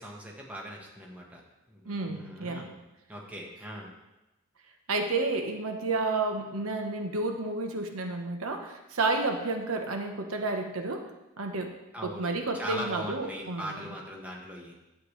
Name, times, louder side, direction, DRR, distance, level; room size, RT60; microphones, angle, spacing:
voice 1, 0.0-1.4 1.7-2.8 3.1-3.9 11.9-14.7, equal, 5° right, -2 dB, 1.3 m, -40 dB
voice 2, 1.8-2.7 4.9-11.1 11.4-11.7 12.0-13.8, right 3 dB, 80° right, 5 dB, 1.0 m, -31 dB
10.5 x 8.1 x 3.3 m, 0.99 s
head